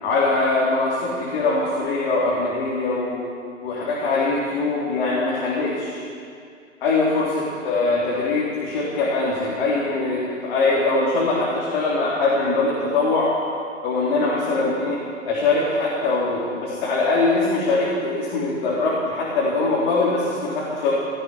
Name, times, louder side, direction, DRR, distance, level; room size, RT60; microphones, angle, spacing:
voice 1, 0.0-3.2 3.6-6.0 6.8-13.3 13.8-15.0 15.3-20.9, left 3 dB, 45° left, -6 dB, 3.9 m, -22 dB
17.5 x 14.0 x 5.8 m, 2.4 s
figure-of-eight pair, 110°, 40 cm